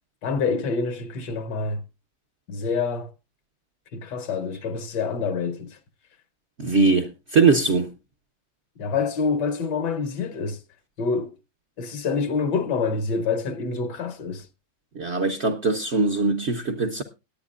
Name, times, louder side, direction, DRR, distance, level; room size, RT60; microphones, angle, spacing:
voice 1, 0.2-1.8 2.5-3.1 3.9-5.8 8.8-10.6 11.0-11.4 11.8-14.5, left 4 dB, 65° left, 1.5 m, -27 dB
voice 2, 6.6-7.9 14.9-17.0, right 4 dB, 50° right, 0.9 m, -21 dB
21.0 x 9.0 x 2.5 m
omnidirectional pair, 2.1 m